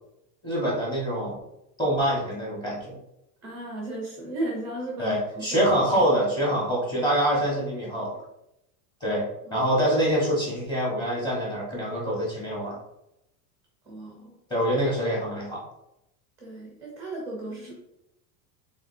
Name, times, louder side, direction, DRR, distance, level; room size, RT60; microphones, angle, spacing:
voice 1, 0.4-1.4 1.8-3.0 5.0-8.2 9.0-12.7 14.5-15.6, equal, 10° left, -5 dB, 1.1 m, -25 dB
voice 2, 3.4-5.6 5.9-6.1 9.5-9.7 13.9-14.3 16.4-17.7, right 2 dB, 5° right, -3 dB, 0.5 m, -35 dB
4.9 x 3.8 x 2.6 m, 0.84 s
supercardioid pair, 170°, 45 cm